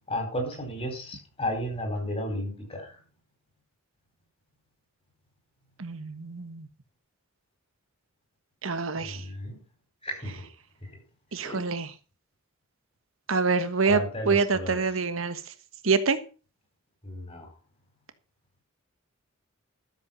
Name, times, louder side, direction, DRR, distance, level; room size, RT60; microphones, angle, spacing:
voice 1, 0.1-3.0 9.0-9.6 10.0-10.4 11.3-11.6 13.9-14.8 17.0-17.5, left 1 dB, 30° left, 5.0 m, -33 dB
voice 2, 5.8-6.7 8.6-9.2 11.3-11.9 13.3-15.4 15.8-16.2, right 4 dB, 75° right, 1.3 m, -26 dB
13.0 x 7.7 x 5.6 m
head